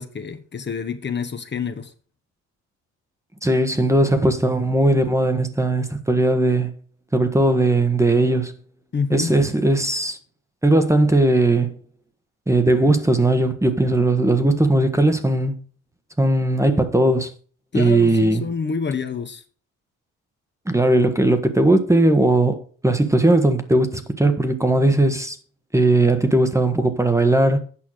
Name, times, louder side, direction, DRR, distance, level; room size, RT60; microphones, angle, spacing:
voice 1, 0.0-1.9 8.9-9.4 17.7-19.4, left 5 dB, 35° left, 1.1 m, -27 dB
voice 2, 3.4-6.7 7.1-8.6 9.1-10.2 10.6-11.8 12.5-15.6 16.2-17.3 17.7-18.4 20.7-25.4 25.7-27.6, right 2 dB, 10° right, 1.3 m, -18 dB
8.7 x 5.7 x 6.4 m
cardioid pair, 90°, 30 cm